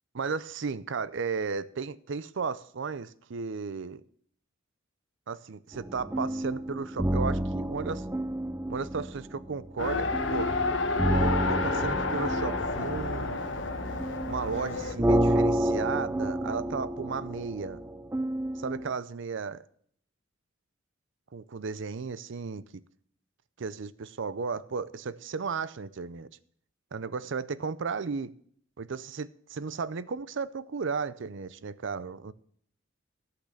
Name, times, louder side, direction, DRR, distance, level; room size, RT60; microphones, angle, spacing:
voice 1, 0.1-4.0 5.3-8.1 8.7-10.5 11.5-13.4 14.3-17.8 18.6-19.6 21.3-22.6 23.6-26.3 26.9-28.3 28.8-32.3, right 5 dB, 65° right, 0.5 m, -34 dB
sound 1, 5.7-18.9, right 1 dB, 15° right, 0.4 m, -30 dB
Race car auto racing, 9.8-14.9, left 3 dB, 65° left, 1.2 m, -30 dB
13.5 x 5.9 x 6.6 m
head